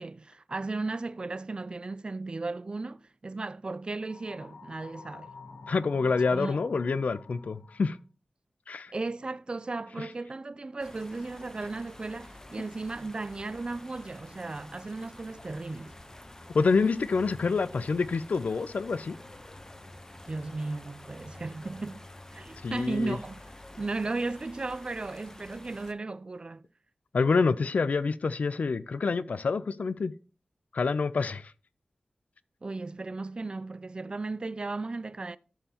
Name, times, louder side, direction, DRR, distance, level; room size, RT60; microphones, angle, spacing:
voice 1, 0.0-5.3 6.3-6.6 8.9-15.9 20.3-22.0 22.3-23.4 23.8-26.6 32.6-35.4, right 3 dB, 40° right, 0.4 m, -35 dB
sound 1, 4.0-8.0, left 3 dB, 60° left, 0.8 m, -48 dB
voice 2, 5.7-8.0 8.7-8.9 16.5-19.2 22.6-23.2 27.1-30.1 30.7-31.5, left 4 dB, 80° left, 0.5 m, -27 dB
sound 2, 10.8-25.9, left 1 dB, 25° left, 0.9 m, -49 dB
14.0 x 5.6 x 2.9 m
wide cardioid pair, 90°, 2 cm